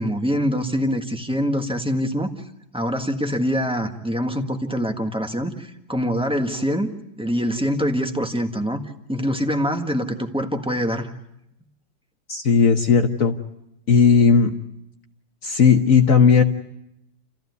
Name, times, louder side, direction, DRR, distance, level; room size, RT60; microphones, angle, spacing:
voice 1, 0.0-2.3 2.7-6.9 7.2-8.8 9.1-11.1, equal, 5° right, 5 dB, 1.3 m, -24 dB
voice 2, 12.3-13.3 13.9-14.5 15.4-16.4, left 6 dB, 50° left, 5 dB, 1.3 m, -15 dB
29.5 x 15.0 x 9.4 m, 0.84 s
omnidirectional pair, 2.0 m